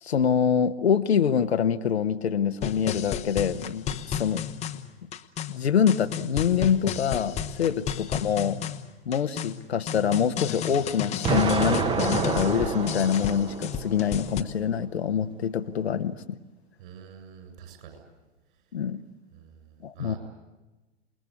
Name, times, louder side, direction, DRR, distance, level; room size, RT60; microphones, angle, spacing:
voice 1, 0.0-4.4 5.5-8.6 9.1-16.4 18.7-19.0 19.8-20.2, left 8 dB, 70° left, 9 dB, 1.1 m, -25 dB
sound 1, 2.6-14.4, left 9 dB, 20° left, 1.0 m, -33 dB
Explosion, 11.2-14.2, right 5 dB, 15° right, 1.1 m, -28 dB
voice 2, 16.8-18.0 19.3-20.2, right 8 dB, 50° right, 7 dB, 7.3 m, -47 dB
28.0 x 20.5 x 8.4 m, 1.1 s
figure-of-eight pair, 105°, 33 cm